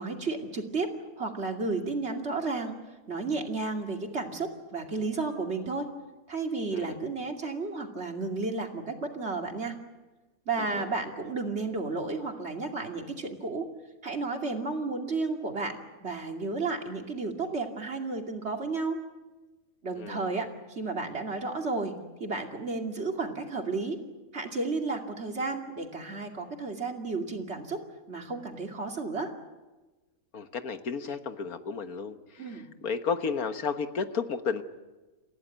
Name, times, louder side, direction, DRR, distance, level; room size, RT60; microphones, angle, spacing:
voice 1, 0.0-2.8 3.1-5.9 6.3-9.8 10.5-13.7 14.0-19.0 19.8-21.9 22.2-24.0 24.3-27.8 28.1-29.3 32.4-32.6, right 3 dB, 50° right, 3 dB, 2.8 m, -32 dB
voice 2, 10.6-10.9 20.0-20.2 30.3-32.4 32.8-34.6, left 5 dB, 85° left, 8 dB, 1.8 m, -32 dB
29.5 x 15.5 x 9.2 m, 1.2 s
omnidirectional pair, 1.5 m